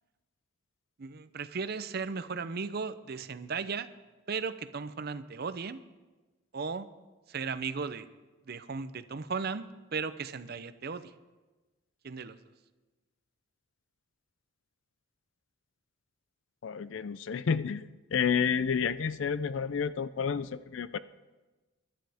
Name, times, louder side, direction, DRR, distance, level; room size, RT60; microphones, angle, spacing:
voice 1, 1.0-3.9 4.3-5.8 6.5-6.9 7.3-8.1 8.5-9.7 9.9-11.1 12.0-12.4, right 5 dB, 45° right, 12 dB, 0.6 m, -36 dB
voice 2, 16.6-21.0, left 6 dB, 60° left, 15 dB, 0.4 m, -30 dB
23.0 x 11.5 x 3.5 m, 1.2 s
head